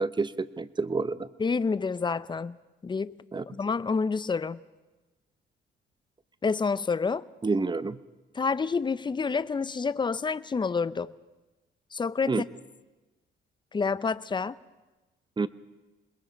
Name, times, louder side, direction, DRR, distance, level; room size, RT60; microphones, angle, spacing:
voice 1, 0.0-1.3 3.3-3.4 7.4-8.0 12.3-12.4 15.4-15.5, right 4 dB, 25° right, 15 dB, 0.8 m, -28 dB
voice 2, 1.4-2.6 2.8-3.2 3.5-4.6 6.4-7.2 8.3-11.1 11.9-12.4 13.7-14.6, left 5 dB, 25° left, 17 dB, 0.6 m, -28 dB
27.0 x 21.0 x 5.2 m, 1.1 s
cardioid pair, 90°, 20 cm